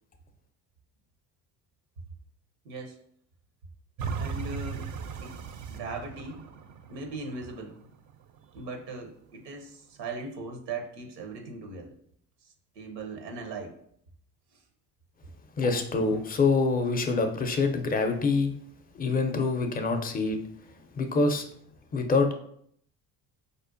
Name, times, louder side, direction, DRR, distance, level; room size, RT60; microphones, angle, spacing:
voice 1, 2.6-3.0 4.1-4.9 5.2-5.4 5.7-6.5 6.9-7.8 8.5-12.0 12.4-13.8, right 3 dB, 90° right, 3 dB, 0.7 m, -39 dB
sound 1, 4.0-9.0 9.5-9.6, right 6 dB, 40° right, 0.4 m, -38 dB
voice 2, 15.6-18.5 18.9-20.4 21.0-21.5 21.9-22.3, left 3 dB, 20° left, 6 dB, 0.4 m, -25 dB
4.9 x 2.1 x 2.5 m, 0.67 s
hypercardioid pair, 60°, 48 cm